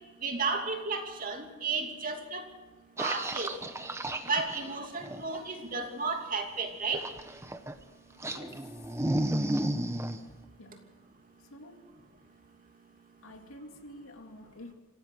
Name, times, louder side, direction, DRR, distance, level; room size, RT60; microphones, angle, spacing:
voice 1, 0.2-2.4 3.0-3.5 4.3-7.0, right 4 dB, 40° right, 3 dB, 2.9 m, -33 dB
sound 1, 3.0-5.4 6.9-7.8 8.2-10.2, right 1 dB, 15° right, 1.1 m, -33 dB
voice 2, 8.3-8.7 10.6-10.9 11.5-11.9 13.2-14.7, left 1 dB, 80° left, 5 dB, 2.5 m, -49 dB
25.5 x 16.5 x 6.3 m, 1.3 s
head